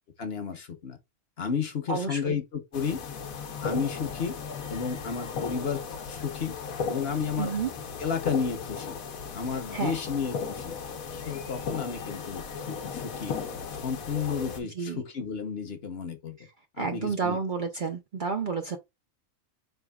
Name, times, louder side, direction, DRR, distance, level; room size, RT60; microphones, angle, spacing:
voice 1, 0.2-1.0 1.4-3.0 3.6-4.3 4.7-6.5 6.9-7.5 8.0-9.0 9.3-10.8 11.1-16.4 16.8-17.4, left 6 dB, 50° left, 1.0 m, -32 dB
voice 2, 1.9-2.4 7.4-7.7 9.7-10.0 14.8-15.0 16.8-18.8, right 5 dB, 60° right, 0.5 m, -30 dB
sound 1, 2.7-14.6, left 6 dB, 85° left, 1.1 m, -36 dB
4.7 x 3.5 x 2.2 m
omnidirectional pair, 1.4 m